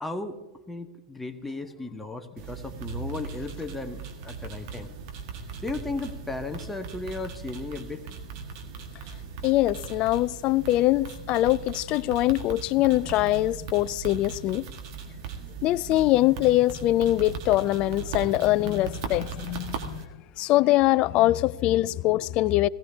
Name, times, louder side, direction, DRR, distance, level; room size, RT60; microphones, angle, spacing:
voice 1, 0.0-0.4 0.7-4.9 5.6-8.0, left 3 dB, 5° left, 1.0 m, -35 dB
sound 1, 2.4-20.0, right 6 dB, 45° right, 1.6 m, -39 dB
voice 2, 9.4-14.7 15.6-20.1 20.4-22.7, left 16 dB, 35° left, 0.3 m, -23 dB
18.5 x 16.0 x 2.8 m
figure-of-eight pair, 100°, 3 cm